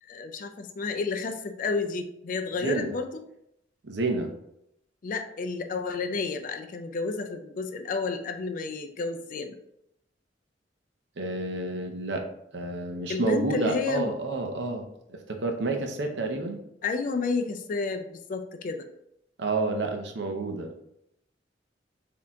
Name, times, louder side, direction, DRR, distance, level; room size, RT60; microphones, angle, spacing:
voice 1, 0.0-3.1 5.0-9.6 13.1-14.1 16.8-18.9, left 4 dB, 45° left, 6 dB, 0.4 m, -31 dB
voice 2, 2.6-2.9 3.8-4.3 11.2-12.3 12.5-16.6 19.4-20.8, right 3 dB, 70° right, 4 dB, 0.7 m, -29 dB
4.3 x 2.8 x 3.6 m, 0.78 s
head